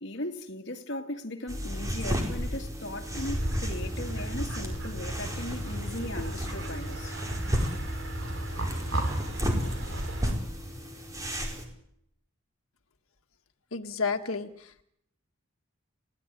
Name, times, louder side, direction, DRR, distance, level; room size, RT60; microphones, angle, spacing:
voice 1, 0.0-7.2 8.5-8.6, left 1 dB, 55° left, 2.4 m, -38 dB
sound 1, 1.5-11.6, equal, 15° right, 4.6 m, -33 dB
sound 2, 3.1-10.3, right 1 dB, 65° right, 5.5 m, -34 dB
voice 2, 13.7-14.5, left 4 dB, 90° left, 1.7 m, -30 dB
30.0 x 18.0 x 10.0 m
head